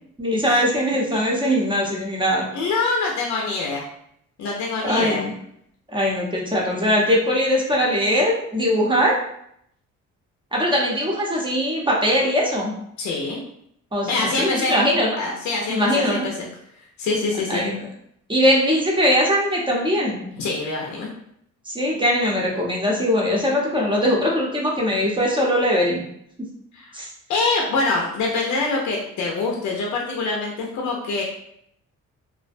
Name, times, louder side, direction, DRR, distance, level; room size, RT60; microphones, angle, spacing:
voice 1, 0.2-2.5 4.8-5.3 5.9-9.2 10.5-12.7 13.9-15.1 15.7-16.2 17.5-17.8 18.3-20.2 21.7-26.0 26.9-27.1, equal, 15° right, -3 dB, 0.7 m, -21 dB
voice 2, 2.5-3.8 4.4-5.2 13.0-13.4 14.1-14.7 15.2-16.5 17.0-17.7 20.4-21.1 26.7-26.9 27.3-31.2, left 3 dB, 70° left, -2 dB, 0.6 m, -24 dB
2.4 x 2.1 x 2.5 m, 0.70 s
cardioid pair, 90°, 30 cm